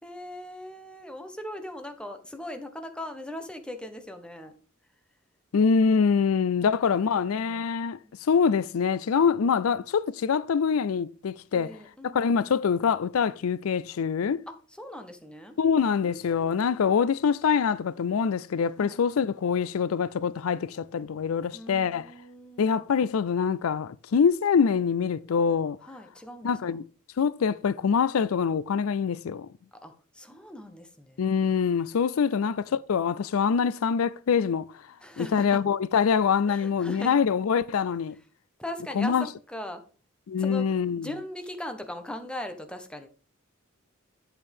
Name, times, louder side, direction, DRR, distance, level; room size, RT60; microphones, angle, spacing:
voice 1, 0.0-4.5 6.6-8.2 11.5-12.2 14.5-15.6 18.8-19.0 21.5-22.8 25.9-26.8 29.7-31.3 35.0-35.6 36.5-37.2 38.6-39.8 40.4-40.7 41.0-43.1, left 1 dB, 5° left, 1.1 m, -40 dB
voice 2, 5.5-11.7 12.1-14.4 15.6-22.1 22.6-25.8 26.4-26.8 27.2-29.5 31.2-34.7 35.2-38.1 39.0-39.2 40.3-41.1, left 6 dB, 90° left, 0.4 m, -25 dB
8.8 x 8.0 x 3.5 m
head